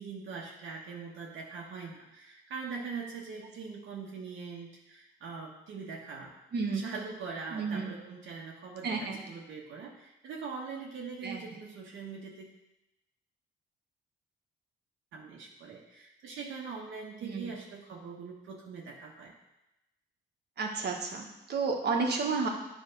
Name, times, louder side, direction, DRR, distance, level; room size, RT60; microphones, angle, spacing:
voice 1, 0.0-6.3 6.7-12.5 15.1-19.3, right 5 dB, 75° right, -3 dB, 1.3 m, -42 dB
voice 2, 6.5-6.8 7.5-7.9 8.8-9.2 11.2-11.4 17.2-17.5 20.6-22.5, right 4 dB, 55° right, 2 dB, 1.5 m, -31 dB
9.9 x 3.5 x 5.3 m, 0.95 s
cardioid pair, 90°, 20 cm